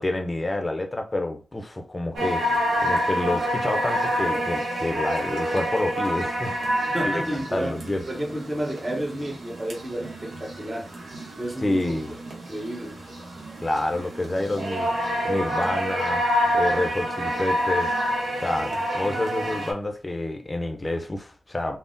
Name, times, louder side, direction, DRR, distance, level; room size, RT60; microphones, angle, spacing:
voice 1, 0.0-2.5 2.8-8.0 11.6-12.1 13.6-14.9 15.2-16.2 16.5-18.0 18.4-21.8, left 2 dB, 25° left, 0.5 m, -28 dB
sound 1, 2.2-19.7, equal, 85° right, 0.8 m, -28 dB
voice 2, 6.9-7.7 8.1-10.9 11.4-12.0 12.5-13.0 18.6-18.8 19.0-19.2, right 1 dB, 30° right, 0.9 m, -31 dB
3.4 x 2.0 x 2.6 m
cardioid pair, 65°, 0 cm